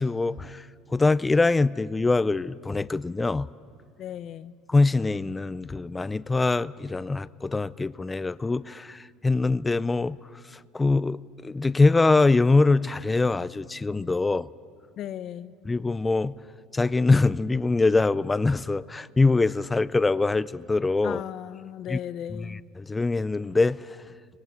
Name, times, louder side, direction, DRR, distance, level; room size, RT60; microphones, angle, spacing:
voice 1, 0.0-3.5 4.7-10.2 10.5-14.5 15.6-16.3 16.7-21.2 21.9-22.0 22.3-24.0, left 3 dB, 15° left, 0.4 m, -23 dB
voice 2, 4.0-4.5 15.0-15.5 21.0-22.6, left 10 dB, 50° left, 0.7 m, -36 dB
18.5 x 17.5 x 9.1 m
supercardioid pair, 115°, 0 cm